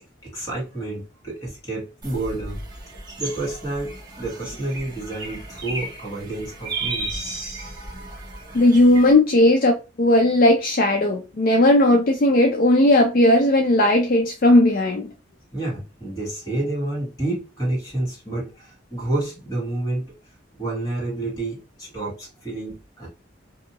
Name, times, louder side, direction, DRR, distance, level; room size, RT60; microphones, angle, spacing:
voice 1, 0.2-2.6 3.2-7.2 15.5-20.1 20.6-23.1, right 2 dB, 20° left, 1.4 m, -29 dB
sound 1, 2.0-9.1, right 2 dB, 20° right, 1.0 m, -34 dB
voice 2, 8.5-15.1, left 1 dB, 50° left, 0.4 m, -17 dB
2.6 x 2.4 x 2.8 m
head